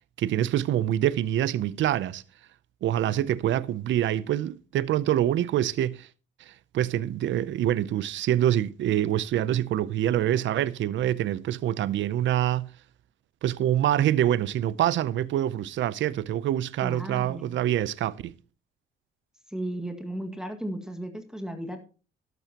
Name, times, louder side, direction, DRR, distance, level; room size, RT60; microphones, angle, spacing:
voice 1, 0.2-2.2 2.8-6.1 6.5-12.7 13.4-18.3, right 12 dB, 70° right, 0.6 m, -25 dB
voice 2, 16.8-17.6 19.5-21.8, right 1 dB, 5° right, 1.8 m, -35 dB
12.5 x 12.0 x 2.9 m
cardioid pair, 90°, 20 cm